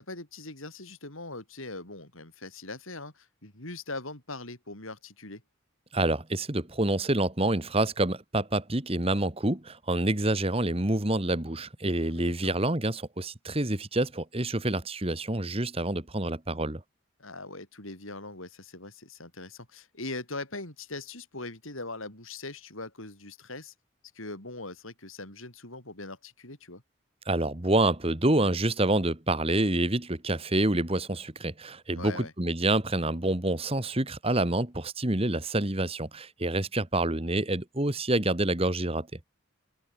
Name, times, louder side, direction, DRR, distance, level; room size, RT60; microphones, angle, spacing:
voice 1, 0.0-5.4 12.1-12.6 17.2-23.7 24.1-26.8 31.9-32.3, left 2 dB, 70° left, 6.5 m, -41 dB
voice 2, 5.9-16.8 27.2-39.1, right 2 dB, 25° right, 1.6 m, -27 dB
open air
head